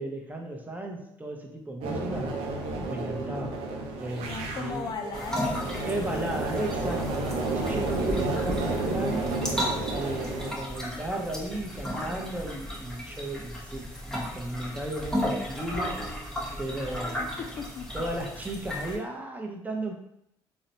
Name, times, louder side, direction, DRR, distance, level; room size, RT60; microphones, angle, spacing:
voice 1, 0.0-2.3 2.9-3.6 4.0-4.9 5.9-9.4 9.9-17.2 17.9-19.9, right 1 dB, 15° right, 2 dB, 0.7 m, -35 dB
sound 1, 1.8-10.5, right 2 dB, 70° right, 0.5 m, -31 dB
voice 2, 4.2-6.4 17.4-17.9, left 5 dB, 45° left, 5 dB, 0.3 m, -37 dB
sound 2, 5.1-19.0, equal, 5° left, 0.8 m, -35 dB
3.8 x 2.1 x 2.7 m, 0.76 s
supercardioid pair, 65°, 10 cm